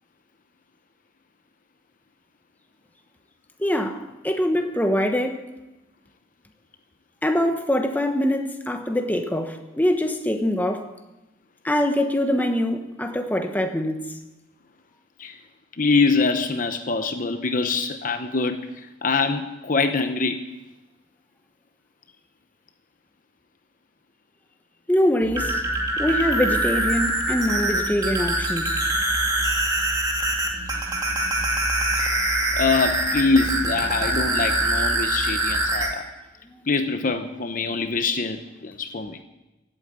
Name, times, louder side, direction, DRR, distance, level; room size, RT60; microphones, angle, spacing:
voice 1, 3.6-5.4 7.2-10.9 11.6-14.1 24.9-25.6 26.0-28.8, left 1 dB, 10° left, 1.2 m, -23 dB
voice 2, 15.8-20.5 32.5-36.1 36.7-39.2, left 4 dB, 45° left, 0.8 m, -24 dB
sound 1, 25.2-35.9, right 1 dB, 20° right, 2.3 m, -24 dB
16.5 x 8.9 x 8.2 m
head